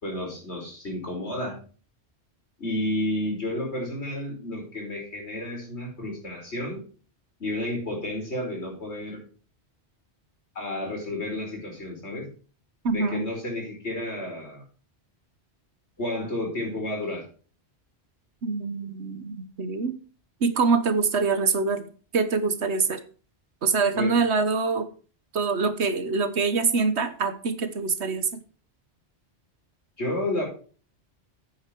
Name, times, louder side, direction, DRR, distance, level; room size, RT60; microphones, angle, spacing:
voice 1, 0.0-1.6 2.6-6.8 7.4-9.2 10.6-12.3 12.9-14.6 16.0-17.3 23.9-24.1 30.0-30.4, left 1 dB, 75° left, 0 dB, 5.3 m, -31 dB
voice 2, 12.8-13.2 18.4-19.9 20.4-21.8 22.1-23.0 23.6-24.9 25.3-28.4, right 4 dB, 75° right, 11 dB, 1.4 m, -24 dB
9.5 x 8.9 x 4.6 m, 0.39 s
omnidirectional pair, 1.1 m